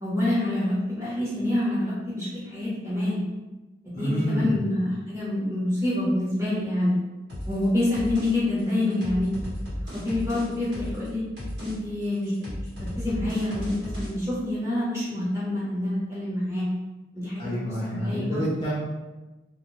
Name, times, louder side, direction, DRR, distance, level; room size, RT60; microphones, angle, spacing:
voice 1, 0.0-3.2 3.9-7.0 7.5-9.3 9.9-11.2 11.6-12.5 13.0-16.6 17.1-18.4, left 1 dB, 15° right, -9 dB, 0.9 m, -27 dB
voice 2, 3.9-4.6 17.4-18.8, equal, 25° left, -8 dB, 0.5 m, -27 dB
sound 1, 7.3-7.6 7.9-8.3 8.6-11.1 11.4-11.7 12.0-14.1, equal, 70° right, 1.1 m, -34 dB
2.4 x 2.1 x 3.1 m, 1.1 s
head